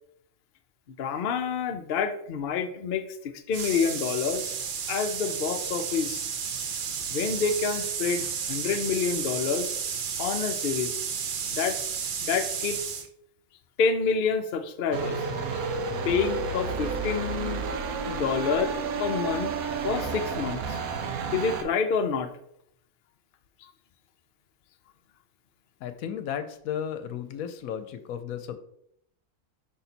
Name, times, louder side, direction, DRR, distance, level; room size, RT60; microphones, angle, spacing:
voice 1, 0.9-4.6 4.9-6.2 7.1-9.7 10.2-10.9 11.4-11.8 12.2-13.0 13.8-15.3 16.0-17.7 18.0-19.5 19.8-20.8 21.3-22.3, left 6 dB, 55° left, 6 dB, 0.6 m, -28 dB
sound 1, 3.5-13.1, right 7 dB, 60° right, 0.5 m, -32 dB
sound 2, 14.9-21.6, right 5 dB, 90° right, 1.2 m, -31 dB
voice 2, 25.8-28.6, left 9 dB, 80° left, 10 dB, 1.0 m, -34 dB
5.6 x 4.0 x 4.3 m, 0.72 s
omnidirectional pair, 1.5 m